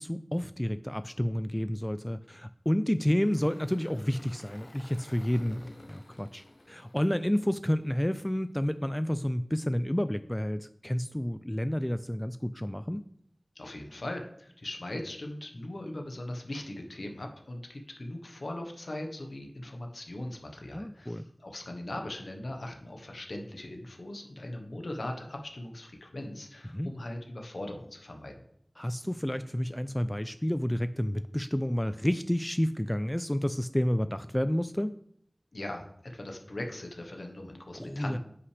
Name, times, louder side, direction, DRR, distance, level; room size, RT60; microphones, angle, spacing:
voice 1, 0.0-5.6 5.9-13.0 20.7-21.2 26.7-26.9 28.8-34.9 37.7-38.2, equal, 15° left, 12 dB, 0.3 m, -30 dB
Engine, 2.9-8.2, left 1 dB, 65° left, 0.7 m, -52 dB
voice 2, 13.5-28.3 35.5-38.2, left 1 dB, 85° left, 3 dB, 1.1 m, -40 dB
9.4 x 5.8 x 3.3 m, 0.68 s
wide cardioid pair, 40°, 0 cm